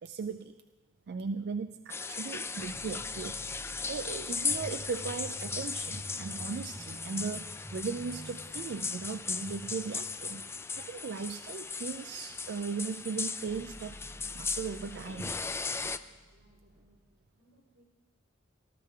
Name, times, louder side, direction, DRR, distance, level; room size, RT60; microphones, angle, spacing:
voice 1, 0.0-0.6 1.1-3.4 3.9-10.4 10.8-15.4, right 5 dB, 55° right, 9 dB, 0.4 m, -38 dB
sound 1, 1.9-16.0, left 4 dB, 15° left, 0.3 m, -37 dB
sound 2, 2.6-6.9 13.5-17.2, equal, 35° left, 1.2 m, -53 dB
sound 3, 4.5-10.9 11.2-11.3, equal, 10° right, 1.0 m, -47 dB
voice 2, 16.3-17.8, right 1 dB, 80° right, -2 dB, 5.0 m, -67 dB
19.0 x 13.0 x 3.7 m, 1.3 s
head